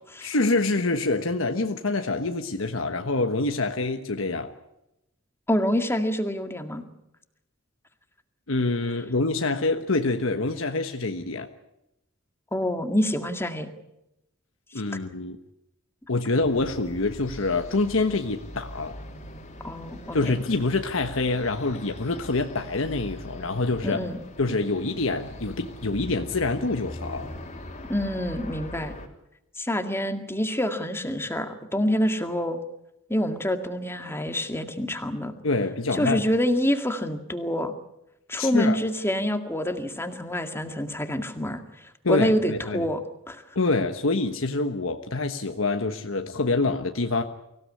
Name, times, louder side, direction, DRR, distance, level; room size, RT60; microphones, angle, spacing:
voice 1, 0.2-4.5 8.5-11.5 14.7-15.4 16.1-18.9 20.1-24.0 24.4-27.3 35.4-36.2 38.4-38.8 42.0-42.9 43.5-47.2, left 3 dB, 70° left, 6 dB, 1.3 m, -26 dB
voice 2, 5.5-6.8 12.5-13.7 19.6-20.3 23.8-24.2 27.9-29.0 29.6-32.6 33.1-35.4 35.9-37.7 38.3-43.0 43.3-43.4, equal, 10° left, 6 dB, 2.0 m, -27 dB
sound 1, 16.4-29.1, left 1 dB, 35° left, 3.3 m, -41 dB
24.5 x 16.5 x 9.7 m, 0.88 s
head